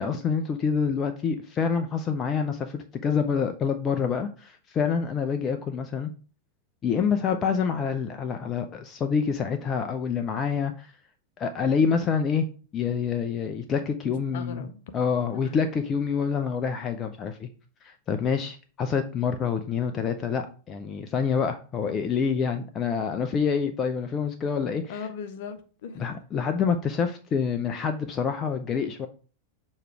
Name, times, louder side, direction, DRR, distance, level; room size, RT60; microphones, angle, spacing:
voice 1, 0.0-6.1 6.8-10.9 11.4-12.5 12.7-14.7 14.9-17.5 17.8-24.8 26.0-29.1, left 6 dB, 25° left, 0.5 m, -27 dB
voice 2, 14.0-14.7 15.3-15.5 24.9-26.1, left 6 dB, 50° left, 0.8 m, -39 dB
6.7 x 3.2 x 4.6 m
figure-of-eight pair, 90°, 0 cm